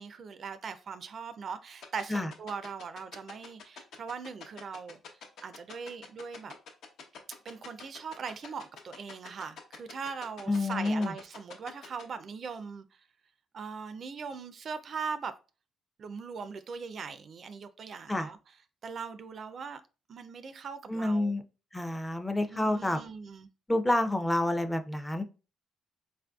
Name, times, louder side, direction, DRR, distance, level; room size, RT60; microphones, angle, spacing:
voice 1, 0.0-5.0 5.4-6.5 7.4-12.9 13.5-15.3 16.0-18.5 18.8-19.8 20.1-21.3 22.5-23.5, right 5 dB, 50° right, 0.3 m, -40 dB
sound 1, 1.8-12.0, left 6 dB, 75° left, 0.7 m, -46 dB
voice 2, 10.5-11.1 18.1-18.3 20.9-21.4 21.7-23.0 23.7-25.2, left 1 dB, 10° left, 0.4 m, -28 dB
4.1 x 2.5 x 2.3 m
cardioid pair, 90°, 0 cm